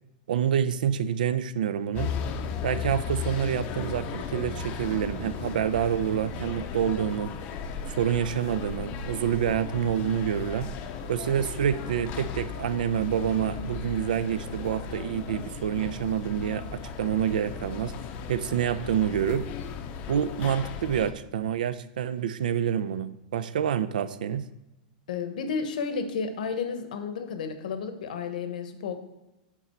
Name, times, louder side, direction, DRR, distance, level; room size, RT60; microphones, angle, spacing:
voice 1, 0.3-2.1 2.6-7.3 7.9-10.7 11.1-17.9 18.3-19.5 20.1-24.4, right 9 dB, 85° right, 14 dB, 0.5 m, -27 dB
sound 1, 1.9-21.1, left 6 dB, 35° left, 0.5 m, -36 dB
voice 2, 25.1-28.9, left 5 dB, 75° left, 8 dB, 0.9 m, -32 dB
8.3 x 4.1 x 4.4 m, 0.98 s
supercardioid pair, 155°, 4 cm